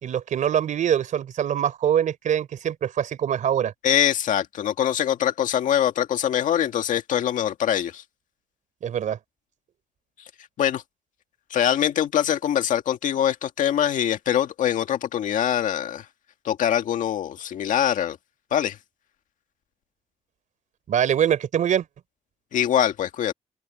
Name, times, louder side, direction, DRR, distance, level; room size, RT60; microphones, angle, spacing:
voice 1, 0.0-3.7 8.8-9.2 20.9-21.8, right 9 dB, 75° right, 3.9 m, -23 dB
voice 2, 3.8-8.0 10.6-10.8 11.5-16.1 16.4-18.2 18.5-18.8 22.5-23.3, left 10 dB, 85° left, 1.8 m, -23 dB
open air
cardioid pair, 95°, 13 cm